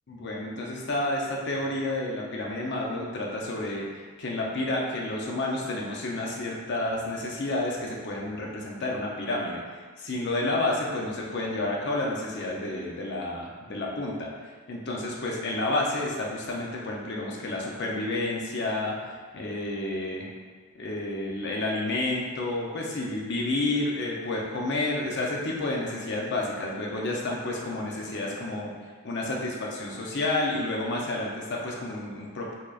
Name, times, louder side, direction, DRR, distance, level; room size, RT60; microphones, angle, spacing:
voice 1, 0.1-9.6 10.0-14.3 14.7-20.3 20.7-28.7 29.0-32.5, left 2 dB, 50° left, -2 dB, 0.6 m, -30 dB
4.6 x 2.9 x 2.4 m, 1.5 s
head